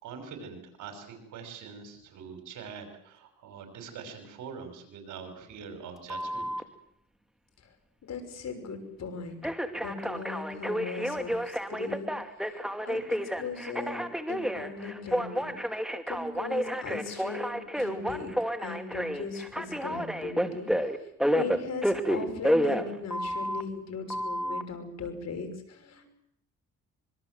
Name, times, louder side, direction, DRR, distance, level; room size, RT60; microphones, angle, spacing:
voice 1, 0.0-6.5, right 6 dB, 85° right, 6 dB, 5.7 m, -43 dB
Telephone, 6.1-6.6 9.4-23.6 24.1-24.6, equal, ahead, 2.4 m, -30 dB
voice 2, 8.0-9.4 9.7-12.1 12.5-14.0 14.3-15.6 16.1-18.3 18.6-26.1, left 5 dB, 60° left, 6 dB, 6.2 m, -38 dB
25.5 x 23.0 x 7.8 m, 0.72 s
cardioid pair, 90°, 30 cm